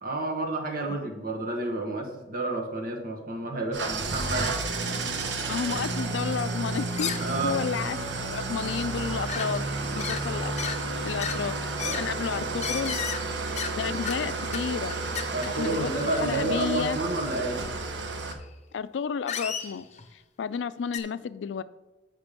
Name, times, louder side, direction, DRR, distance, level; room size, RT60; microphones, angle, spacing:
voice 1, 0.0-4.6 7.2-7.6 11.8-12.0 15.3-17.6, right 2 dB, 55° right, 2 dB, 1.5 m, -30 dB
Engine starting / Idling, 3.7-18.3, right 3 dB, 85° right, 0.9 m, -31 dB
voice 2, 5.5-8.0 8.3-9.6 9.9-10.7 11.0-13.0 13.7-15.0 15.5-17.0 18.7-19.8 20.1-21.6, left 6 dB, 85° left, 15 dB, 0.4 m, -32 dB
sound 1, 7.0-7.7 8.0-8.1 8.6-8.7 8.9-9.5 10.0-10.2 10.6-10.8 11.2-11.4 11.8-12.0 12.6-13.2 13.6-13.8 14.0-14.2 14.5-14.6 14.9-15.5 16.8-17.0 17.3-17.4 18.3-18.4 19.3-20.1 20.9-21.0, left 7 dB, 40° left, 0.7 m, -33 dB
7.4 x 5.7 x 5.2 m, 1.1 s
head